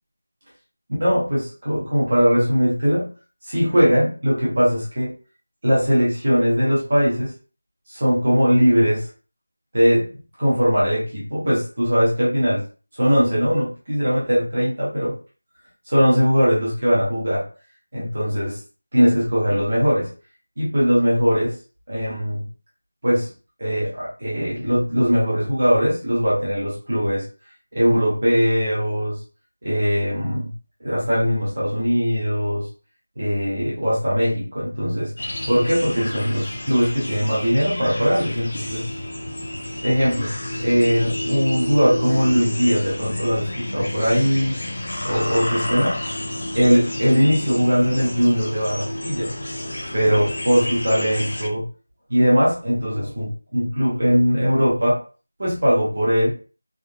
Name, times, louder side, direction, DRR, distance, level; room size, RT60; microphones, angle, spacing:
voice 1, 1.0-3.1 3.4-5.1 5.6-7.3 7.9-9.0 9.7-10.1 10.4-12.6 13.0-15.1 15.9-17.4 17.9-18.6 18.9-20.1 20.6-21.5 21.9-22.4 23.0-23.3 23.6-27.2 27.7-29.2 29.6-30.5 30.8-32.7 33.2-35.1 35.5-38.9 39.8-40.3 40.6-44.5 45.0-46.0 46.5-49.3 49.9-51.6 52.1-55.0 55.4-56.3, equal, 30° right, -7 dB, 1.1 m, -20 dB
sound 1, 35.2-51.5, left 1 dB, 30° left, 0.5 m, -30 dB
3.6 x 2.6 x 2.2 m, 0.36 s
figure-of-eight pair, 180°, 0 cm